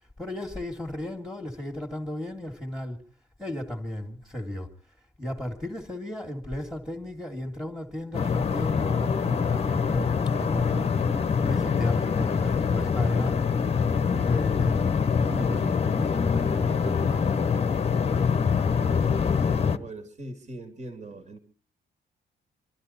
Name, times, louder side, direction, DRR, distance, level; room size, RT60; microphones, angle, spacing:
voice 1, 0.2-3.0 3.4-4.7 5.2-13.4 14.1-17.5, left 1 dB, ahead, 2.0 m, -35 dB
sound 1, 8.1-19.8, left 6 dB, 35° left, 0.9 m, -24 dB
voice 2, 19.2-21.4, right 2 dB, 45° right, 2.4 m, -41 dB
26.5 x 12.5 x 4.2 m
wide cardioid pair, 160°, 19 cm